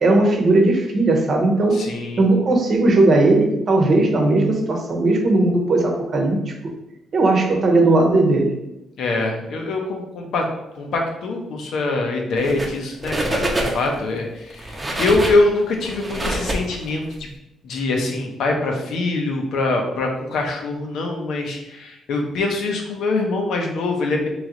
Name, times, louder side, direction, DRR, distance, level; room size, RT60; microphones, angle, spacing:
voice 1, 0.0-1.8 2.2-6.5 7.1-8.5, right 2 dB, 50° right, 2 dB, 0.9 m, -17 dB
voice 2, 1.7-2.2 9.0-10.4 10.7-17.3 17.6-24.3, left 2 dB, 75° left, 2 dB, 0.7 m, -23 dB
sound 1, 12.4-12.8 13.0-14.0 14.5-17.2, right 1 dB, 20° right, 0.8 m, -26 dB
3.2 x 3.0 x 3.8 m, 0.90 s
cardioid pair, 90°, 0 cm